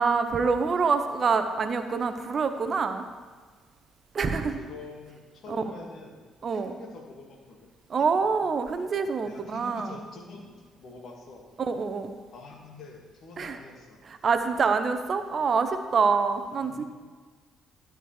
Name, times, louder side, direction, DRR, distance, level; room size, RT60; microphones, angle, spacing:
voice 1, 0.0-3.1 4.1-4.6 5.5-5.6 6.4-6.8 7.9-10.0 11.6-12.1 13.4-13.6 14.0-16.8, right 5 dB, 45° right, 9 dB, 0.7 m, -26 dB
voice 2, 4.3-6.2 6.5-7.7 8.0-8.1 9.2-11.5 12.3-14.0 16.6-16.8, left 3 dB, 55° left, 2 dB, 1.7 m, -45 dB
12.5 x 8.9 x 3.2 m, 1.5 s
hypercardioid pair, 50°, 0 cm